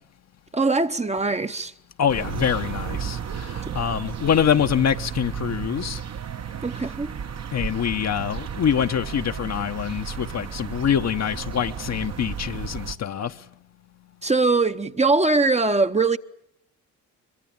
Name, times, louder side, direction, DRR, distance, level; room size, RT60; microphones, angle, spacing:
voice 1, 0.5-1.7 6.6-7.1 14.2-16.2, right 3 dB, 20° right, 0.9 m, -21 dB
voice 2, 2.0-6.0 7.5-13.5, left 8 dB, 50° left, 1.0 m, -25 dB
sound 1, 2.1-13.0, right 7 dB, 45° right, 1.1 m, -33 dB
23.5 x 22.5 x 8.8 m
supercardioid pair, 65°, 35 cm